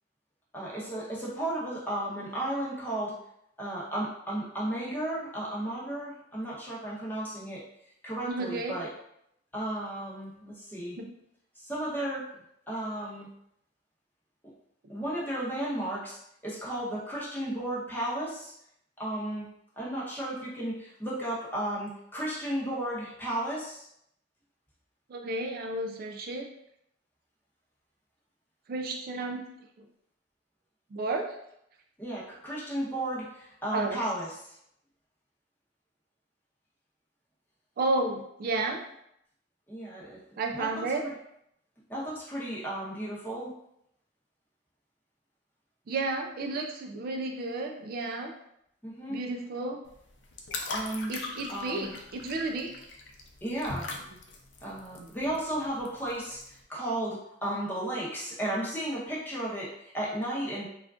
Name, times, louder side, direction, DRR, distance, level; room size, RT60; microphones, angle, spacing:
voice 1, 0.5-3.2 3.6-7.6 8.0-8.9 9.5-11.0 11.6-12.2 12.7-13.3 14.9-16.2 16.4-18.5 19.0-19.4 19.8-23.9 32.0-34.3 39.7-40.2 40.5-41.1 41.9-43.5 48.8-49.2 50.7-51.1 51.5-51.9 53.4-53.9 54.6-59.7 59.9-60.7, right 1 dB, 10° left, -6 dB, 0.8 m, -34 dB
voice 2, 8.3-8.8 11.0-11.1 25.1-26.5 28.7-29.5 30.9-31.4 33.7-34.0 37.8-38.8 40.4-41.0 45.9-48.3 49.1-49.8 51.1-52.7 55.0-55.1, right 2 dB, 55° right, 2 dB, 0.3 m, -32 dB
sound 1, 49.9-56.6, left 3 dB, 75° left, 0.5 m, -41 dB
3.5 x 2.4 x 2.3 m, 0.76 s
head